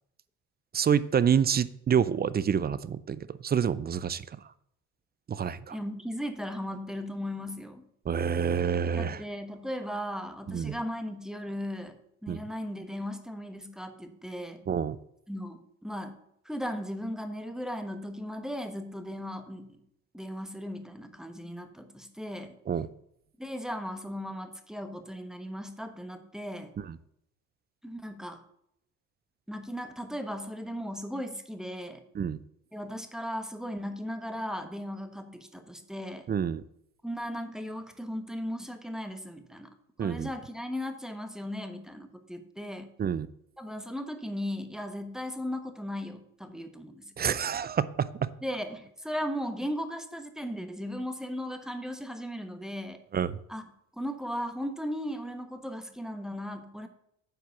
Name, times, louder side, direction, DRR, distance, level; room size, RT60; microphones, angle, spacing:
voice 1, 0.7-4.2 5.3-5.7 8.1-9.2 10.5-10.7 12.3-12.4 14.7-15.0 22.7-22.9 26.8-27.0 32.2-32.4 36.3-36.6 40.0-40.3 43.0-43.3 47.2-48.3 53.1-53.3, right 7 dB, 30° right, 17 dB, 0.5 m, -27 dB
voice 2, 5.7-7.8 9.0-14.6 15.3-16.2 16.4-19.8 20.1-22.6 23.4-26.7 27.8-28.4 29.5-32.0 32.7-36.2 37.0-39.7 40.0-42.9 43.6-47.1 48.4-53.0 53.5-53.6 54.0-56.9, equal, ahead, 7 dB, 1.1 m, -37 dB
8.0 x 4.7 x 7.0 m, 0.75 s
supercardioid pair, 75°, 34 cm